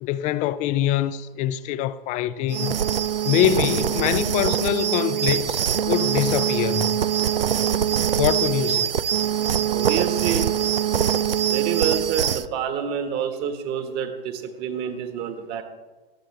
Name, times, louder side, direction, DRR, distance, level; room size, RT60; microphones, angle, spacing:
voice 1, 0.0-2.7 3.2-7.0 8.2-9.0, left 12 dB, 25° left, 0.5 m, -24 dB
sound 1, 2.5-12.5, right 9 dB, 75° right, 0.6 m, -23 dB
voice 2, 9.6-10.5 11.5-15.6, right 8 dB, 35° right, 1.6 m, -28 dB
18.5 x 14.0 x 3.4 m
figure-of-eight pair, 100°, 29 cm